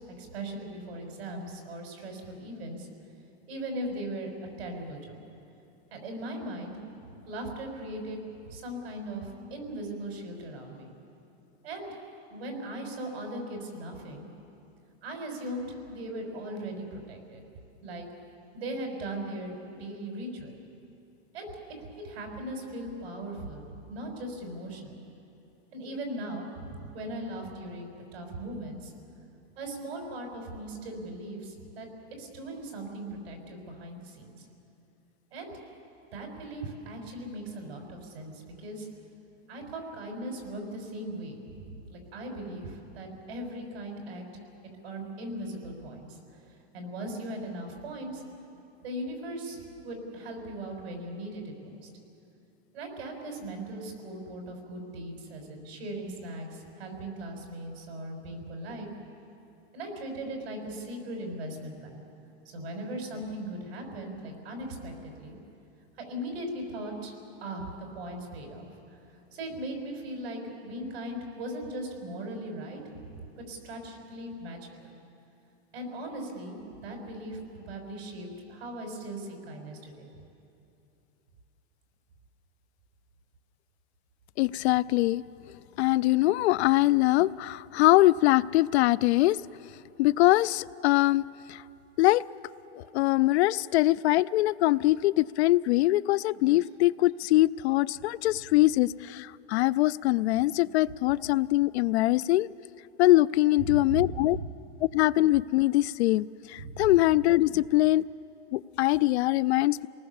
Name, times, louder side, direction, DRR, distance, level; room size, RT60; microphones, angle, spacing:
voice 1, 0.2-2.9 3.5-4.3 4.6-5.2 5.9-6.7 7.3-8.2 8.5-10.9 11.6-11.9 12.3-14.3 15.0-17.4 17.8-18.1 18.5-20.6 21.3-21.5 21.8-25.0 25.7-28.9 29.6-31.9 32.2-34.5 35.3-35.5 36.1-38.9 39.5-44.2 44.8-48.2 48.8-51.9 52.7-58.9 59.7-62.0 62.5-65.4 66.1-67.1 67.4-68.7 69.3-72.8 73.1-74.9 75.7-80.1 103.6-104.5 106.6-106.9, right 1 dB, 70° right, 2 dB, 5.6 m, -38 dB
voice 2, 84.4-85.2 85.8-89.4 90.0-91.2 91.5-91.6 92.0-92.2 92.7-102.5 103.0-104.4 104.8-108.0 108.5-109.9, left 17 dB, 85° left, 20 dB, 0.5 m, -23 dB
28.5 x 19.0 x 7.1 m, 2.8 s
supercardioid pair, 180°, 32 cm